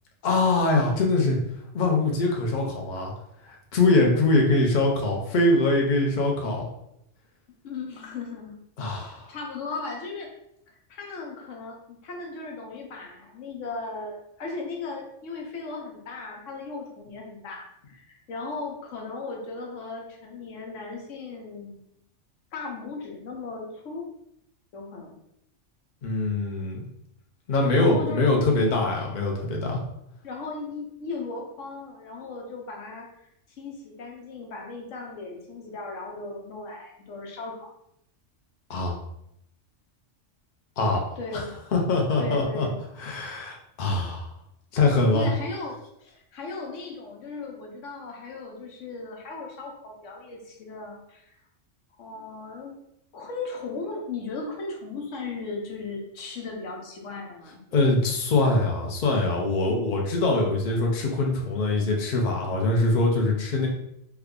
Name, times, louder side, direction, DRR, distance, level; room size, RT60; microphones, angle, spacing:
voice 1, 0.2-1.4 1.7-3.1 3.4-6.6 8.8-9.3 26.0-26.8 27.5-29.8 38.7-39.0 40.8-41.0 41.3-41.4 41.7-42.7 43.0-44.3 44.7-45.3 57.7-63.7, left 2 dB, 45° left, 0 dB, 0.7 m, -23 dB
voice 2, 7.6-8.6 9.0-10.3 10.7-22.0 22.5-24.1 24.7-25.2 27.8-28.5 30.2-33.3 33.6-37.7 41.2-41.5 42.2-42.8 45.1-51.4 52.0-52.8 53.1-57.6, left 3 dB, 80° left, 0 dB, 1.1 m, -37 dB
3.4 x 2.2 x 3.6 m, 0.77 s
omnidirectional pair, 1.3 m